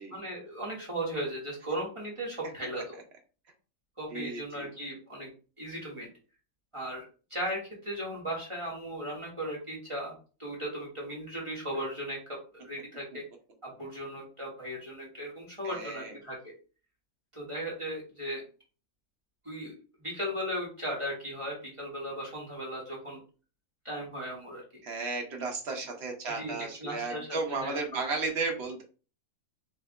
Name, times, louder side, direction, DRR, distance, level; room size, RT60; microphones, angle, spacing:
voice 1, 0.1-3.0 4.0-5.3 5.6-6.1 6.7-7.0 7.3-10.1 10.4-12.2 12.5-13.2 13.6-16.5 17.3-18.4 19.4-19.7 20.0-23.2 23.8-24.6 26.3-28.0, equal, 20° right, -3 dB, 1.2 m, -37 dB
voice 2, 4.1-4.7 15.6-16.1 24.8-28.8, right 3 dB, 50° right, 3 dB, 1.0 m, -34 dB
3.2 x 2.9 x 3.5 m, 0.36 s
omnidirectional pair, 1.7 m